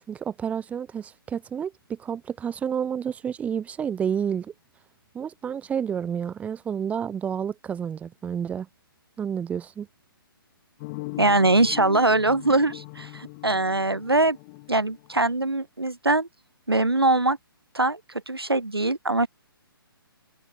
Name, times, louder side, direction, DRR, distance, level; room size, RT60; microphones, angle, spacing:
voice 1, 0.1-4.5 5.1-8.7 9.2-9.9, right 8 dB, 10° right, 2.3 m, -30 dB
sound 1, 10.8-15.6, left 29 dB, 25° left, 2.3 m, -40 dB
voice 2, 11.2-14.4 14.7-16.3 16.7-17.4 17.7-18.0 18.3-19.3, right 2 dB, 85° right, 1.7 m, -22 dB
figure-of-eight pair, 130°, 12 cm